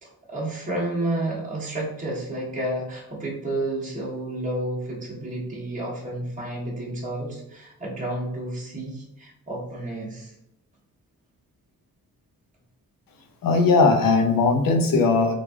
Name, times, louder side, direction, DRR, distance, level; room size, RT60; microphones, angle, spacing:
voice 1, 0.0-10.3, right 1 dB, 20° right, -5 dB, 1.1 m, -31 dB
voice 2, 13.4-15.3, left 4 dB, 70° left, 5 dB, 0.7 m, -19 dB
3.2 x 2.6 x 3.4 m, 0.78 s
cardioid pair, 95°, 35 cm